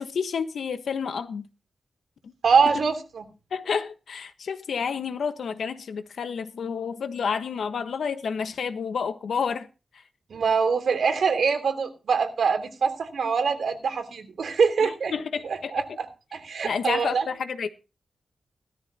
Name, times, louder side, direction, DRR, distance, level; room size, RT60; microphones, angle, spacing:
voice 1, 0.0-1.5 2.2-2.3 2.6-2.8 3.5-9.7 14.8-15.8 16.6-17.7, left 6 dB, 85° left, 1.3 m, -30 dB
voice 2, 2.4-3.2 10.3-15.1 15.5-16.0 16.3-17.2, right 5 dB, 80° right, 3.2 m, -24 dB
17.0 x 13.5 x 2.9 m
wide cardioid pair, 165°, 0 cm